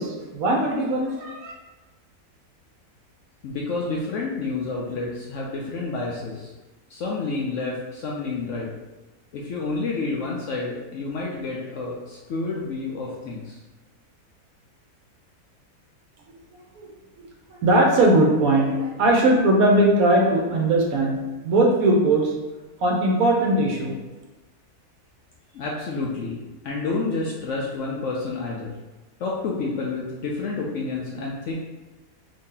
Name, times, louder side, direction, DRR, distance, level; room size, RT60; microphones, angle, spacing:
voice 1, 0.0-1.5 16.8-16.9 17.5-22.3 22.8-23.9, right 1 dB, 70° right, 0 dB, 1.1 m, -20 dB
voice 2, 3.4-6.5 6.9-8.7 9.3-13.6 25.5-26.4 26.6-28.7 29.2-31.5, left 3 dB, 70° left, -3 dB, 0.7 m, -29 dB
3.0 x 2.7 x 3.7 m, 1.1 s
omnidirectional pair, 1.6 m